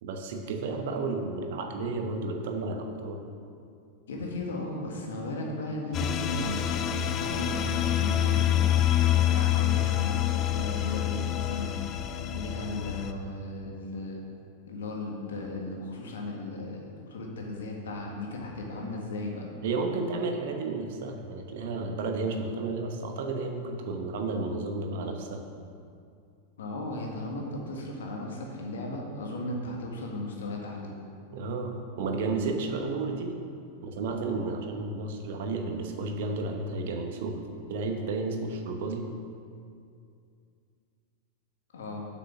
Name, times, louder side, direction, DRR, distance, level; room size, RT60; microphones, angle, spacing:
voice 1, 0.0-3.2 19.6-25.5 31.3-33.3 33.8-37.4 37.7-39.1, right 3 dB, 55° right, 4 dB, 1.0 m, -32 dB
voice 2, 4.1-11.8 12.3-14.2 14.7-19.5 26.6-30.9 41.7-42.0, left 2 dB, 65° left, 0 dB, 1.6 m, -36 dB
sound 1, 5.9-13.1, left 11 dB, 30° left, 0.5 m, -27 dB
7.8 x 6.1 x 5.9 m, 2.4 s
figure-of-eight pair, 90°, 0 cm